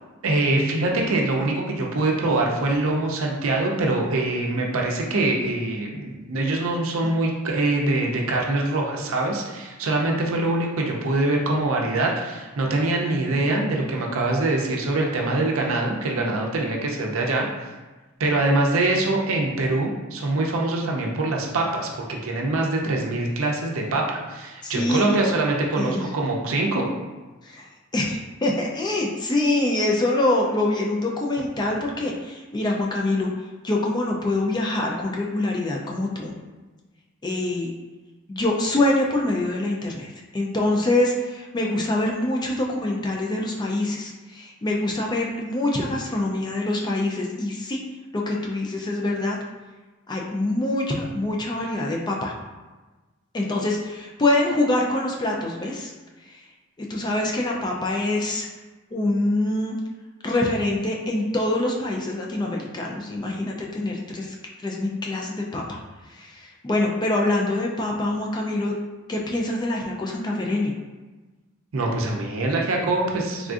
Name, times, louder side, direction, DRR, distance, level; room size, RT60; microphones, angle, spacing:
voice 1, 0.2-17.5 18.2-26.9 71.7-73.5, right 2 dB, 70° right, 0 dB, 0.5 m, -24 dB
voice 2, 24.6-25.2 25.8-26.0 27.4-27.7 27.9-33.3 33.6-36.3 37.2-37.7 38.3-47.8 48.1-49.4 50.1-52.3 53.3-55.9 56.3-56.4 56.8-58.5 58.9-59.8 60.2-64.3 64.6-65.8 66.1-68.7 69.1-70.7, left 2 dB, 20° left, -1 dB, 0.3 m, -25 dB
3.5 x 2.5 x 2.4 m, 1.2 s
head